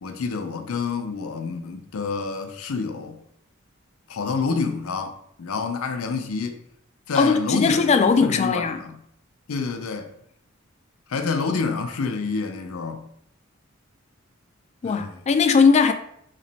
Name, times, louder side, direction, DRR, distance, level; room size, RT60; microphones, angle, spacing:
voice 1, 0.0-3.2 4.1-6.6 7.1-9.0 9.5-10.1 11.1-13.0 14.8-15.2, left 4 dB, 90° left, 0.5 m, -28 dB
voice 2, 7.1-8.8 14.8-15.9, left 5 dB, 30° left, 0.3 m, -19 dB
3.1 x 2.9 x 4.0 m
head